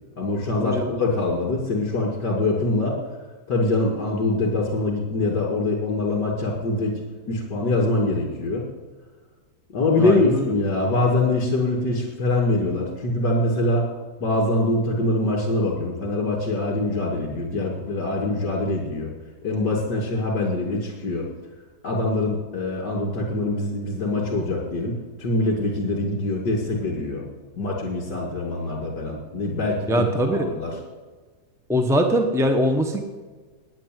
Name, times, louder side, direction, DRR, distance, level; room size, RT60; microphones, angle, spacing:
voice 1, 0.2-3.0 3.5-7.0 7.3-8.6 9.7-13.9 14.2-19.1 19.4-21.3 21.8-27.3 27.5-30.7, left 2 dB, 75° left, -4 dB, 3.0 m, -24 dB
voice 2, 10.0-10.4 29.9-30.5 31.7-33.0, equal, 5° right, 4 dB, 0.5 m, -22 dB
9.5 x 8.6 x 9.2 m, 1.4 s
omnidirectional pair, 1.8 m